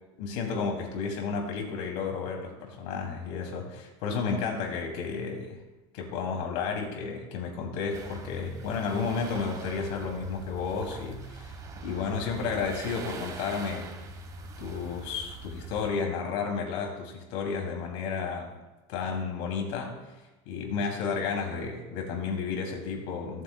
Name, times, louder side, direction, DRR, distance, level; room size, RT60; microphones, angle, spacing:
voice 1, 0.2-5.6 5.9-11.6 11.8-13.9 14.6-18.5 18.9-19.9 20.5-23.4, left 5 dB, 60° left, 1 dB, 2.6 m, -32 dB
sound 1, 7.9-15.9, right 2 dB, 25° right, 1.2 m, -42 dB
17.5 x 8.4 x 2.2 m, 1.1 s
supercardioid pair, 160°, 15 cm